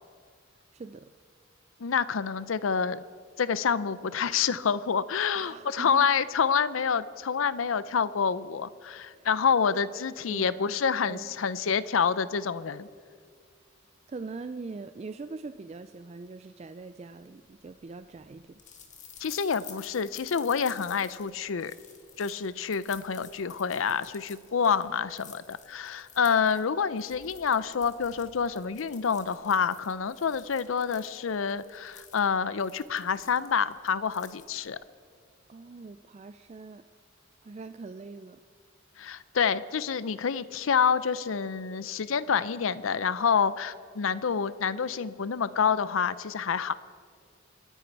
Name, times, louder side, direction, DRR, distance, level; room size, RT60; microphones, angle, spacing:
voice 1, 0.5-1.1 5.3-6.1 9.1-9.3 9.7-9.8 10.3-10.7 11.1-11.3 14.1-18.6 35.5-36.9 37.4-38.4, right 3 dB, 30° right, 11 dB, 0.3 m, -42 dB
voice 2, 1.8-3.0 3.4-12.9 19.2-21.7 22.2-34.8 39.0-46.7, left 6 dB, 90° left, 16 dB, 0.6 m, -27 dB
sound 1, 17.5-34.8, left 7 dB, 35° left, 1.4 m, -51 dB
28.0 x 10.0 x 4.6 m, 2.1 s
head